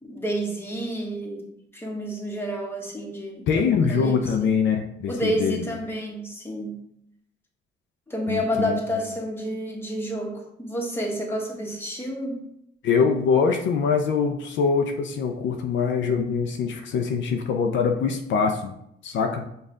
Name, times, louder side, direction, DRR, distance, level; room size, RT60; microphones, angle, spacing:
voice 1, 0.0-1.4 1.7-4.5 5.1-6.8 8.1-12.4, equal, 10° left, -1 dB, 1.1 m, -30 dB
voice 2, 3.5-5.7 8.3-8.8 12.8-18.7 19.0-19.5, left 5 dB, 70° left, 4 dB, 0.5 m, -23 dB
5.3 x 2.4 x 3.8 m, 0.77 s
cardioid pair, 90°, 20 cm